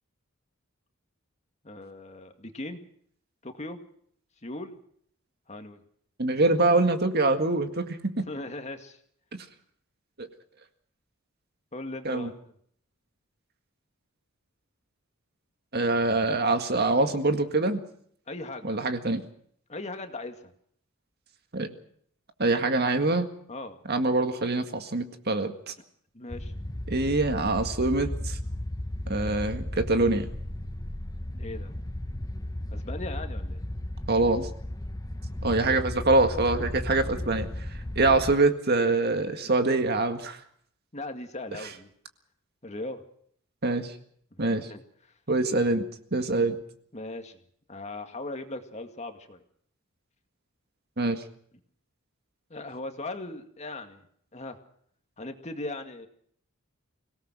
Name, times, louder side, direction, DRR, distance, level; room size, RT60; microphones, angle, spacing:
voice 1, 1.6-2.8 3.4-3.8 4.4-4.8 5.5-5.8 8.2-9.0 11.7-12.5 18.3-18.8 19.7-20.5 23.5-23.8 26.1-26.5 31.3-31.7 32.7-33.6 39.4-39.5 40.9-41.9 42.6-43.0 44.4-45.1 46.9-47.4 47.7-49.4 52.5-54.0 54.3-54.6 55.2-56.1, left 2 dB, 35° left, 6 dB, 2.1 m, -38 dB
voice 2, 6.2-8.2 10.2-10.3 12.1-12.3 15.7-17.8 18.6-19.2 21.5-21.7 22.4-23.3 23.9-25.7 26.9-28.4 29.1-30.3 34.1-34.5 35.4-37.5 38.0-40.4 43.6-43.9 44.4-44.7 45.3-45.8 46.1-46.6 51.0-51.2, right 2 dB, 50° right, 7 dB, 1.9 m, -24 dB
sound 1, 26.3-38.4, left 1 dB, 15° left, 0.8 m, -35 dB
25.0 x 18.0 x 6.2 m, 0.63 s
head